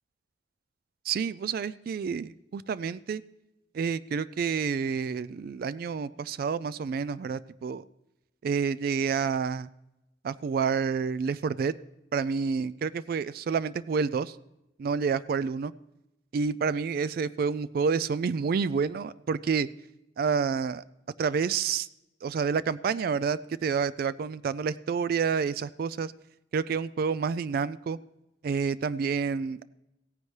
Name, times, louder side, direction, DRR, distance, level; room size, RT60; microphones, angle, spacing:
voice 1, 1.1-3.2 3.7-7.8 8.4-9.7 10.2-11.7 12.1-14.4 14.8-15.7 16.3-19.7 20.2-20.8 21.2-21.9 22.2-26.1 26.5-28.0 28.4-29.6, right 5 dB, 55° right, 17 dB, 0.3 m, -29 dB
16.5 x 9.6 x 3.2 m, 0.91 s
head